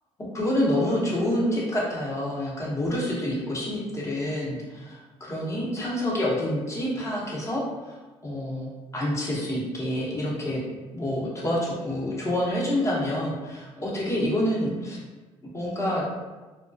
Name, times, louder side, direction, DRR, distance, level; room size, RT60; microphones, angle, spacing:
voice 1, 0.2-8.0 8.2-10.6 10.9-15.0 15.5-16.0, left 1 dB, 25° left, -5 dB, 0.8 m, -27 dB
2.3 x 2.1 x 2.5 m, 1.2 s
cardioid pair, 95°, 11 cm